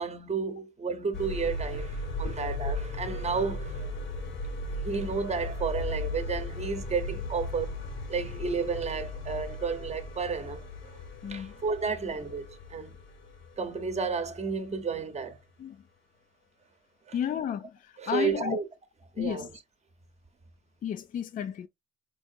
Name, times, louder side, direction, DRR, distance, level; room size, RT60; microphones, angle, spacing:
voice 1, 0.0-3.9 4.7-7.7 8.1-13.0 13.6-15.4 17.1-17.2 18.0-18.7 19.1-19.5, right 5 dB, 35° right, 0.9 m, -32 dB
sound 1, 1.1-15.0 15.3-15.4, left 2 dB, 75° left, 1.0 m, -37 dB
voice 2, 11.2-11.5 15.6-15.8 17.1-18.6 19.2-19.5 20.8-21.7, left 9 dB, 45° left, 0.4 m, -32 dB
4.6 x 2.6 x 2.5 m
cardioid pair, 90°, 20 cm